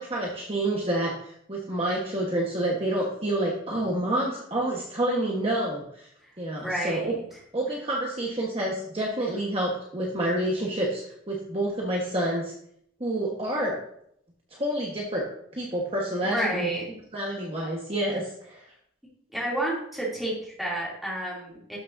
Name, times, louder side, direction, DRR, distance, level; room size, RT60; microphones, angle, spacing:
voice 1, 0.0-6.1 6.4-7.1 7.5-11.0 11.3-12.5 13.0-13.8 14.5-15.2 15.5-16.7 17.1-18.6, right 1 dB, 25° right, -3 dB, 1.2 m, -28 dB
voice 2, 6.6-7.4 16.2-16.9 19.3-21.8, right 1 dB, ahead, -6 dB, 2.6 m, -30 dB
12.0 x 6.3 x 2.6 m, 0.70 s
head